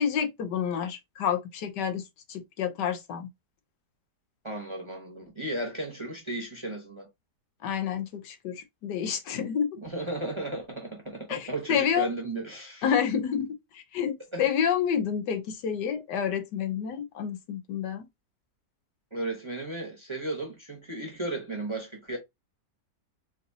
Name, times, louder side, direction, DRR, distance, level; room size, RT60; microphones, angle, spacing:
voice 1, 0.0-2.0 2.3-3.3 7.6-9.8 11.3-12.1 12.8-13.5 13.7-18.1, left 8 dB, 80° left, 1.4 m, -29 dB
voice 2, 4.4-7.1 9.8-12.9 14.3-14.5 19.1-22.2, right 2 dB, 20° right, 0.9 m, -35 dB
5.0 x 2.7 x 2.7 m
omnidirectional pair, 1.8 m